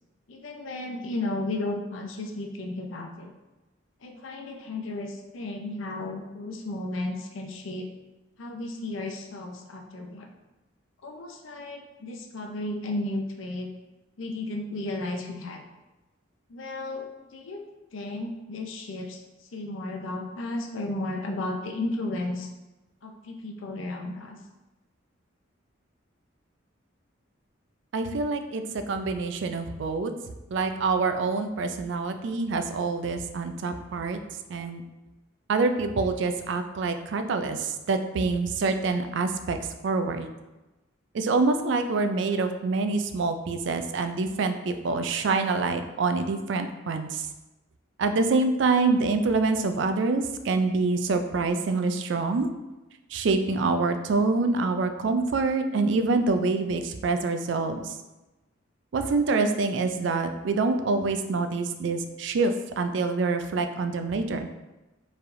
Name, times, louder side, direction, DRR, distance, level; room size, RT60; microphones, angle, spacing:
voice 1, 0.3-3.3 4.0-7.9 8.4-10.3 11.0-13.7 14.2-15.6 16.5-17.1 17.3-17.6 17.9-19.2 19.5-22.5 23.0-24.4, left 2 dB, 75° left, 3 dB, 0.5 m, -34 dB
voice 2, 27.9-30.1 30.5-34.2 34.5-34.8 35.5-39.6 39.8-40.3 41.1-47.3 48.0-52.5 53.1-58.0 58.9-64.5, right 3 dB, 65° right, 8 dB, 0.3 m, -26 dB
4.6 x 3.3 x 2.6 m, 1.1 s
head